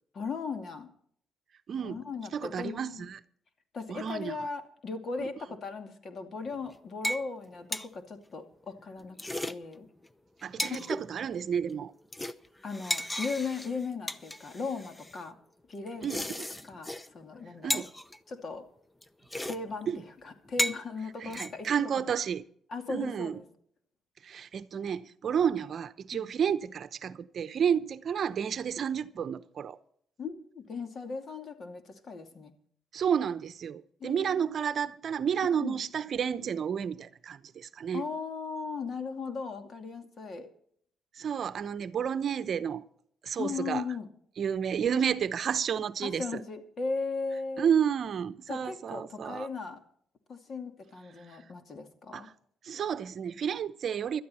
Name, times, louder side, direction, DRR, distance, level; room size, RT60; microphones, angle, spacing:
voice 1, 0.1-0.9 1.8-3.1 3.7-9.2 9.4-9.9 10.6-10.8 12.6-15.4 15.7-16.4 16.6-17.9 18.3-18.6 19.5-21.7 22.7-23.5 26.1-26.3 30.2-32.5 34.0-34.5 35.5-35.8 37.9-40.5 43.4-44.1 46.0-47.7 48.5-49.8 50.3-52.3, left 4 dB, 50° left, 2.5 m, -37 dB
voice 2, 1.7-2.0 2.3-3.2 3.9-4.4 5.2-5.3 10.4-11.9 16.0-16.5 17.6-17.9 19.9-20.0 21.2-22.4 22.9-23.4 24.2-29.8 32.9-38.0 41.2-42.8 43.2-43.8 44.4-46.4 47.6-49.5 52.1-52.3 52.6-54.2, right 8 dB, 55° right, 0.8 m, -31 dB
sound 1, 6.5-6.7 7.0-7.3 7.5-7.9 9.0-9.5 10.0-10.1 10.4-11.0 11.5-11.8 12.1-15.2 15.9-17.1 17.3-17.4 17.7-18.2 19.0-19.1 19.3-19.6 19.8-19.9 20.5-20.8 21.3-21.7, left 1 dB, 15° left, 0.8 m, -34 dB
17.5 x 12.5 x 4.3 m
cardioid pair, 90°, 0 cm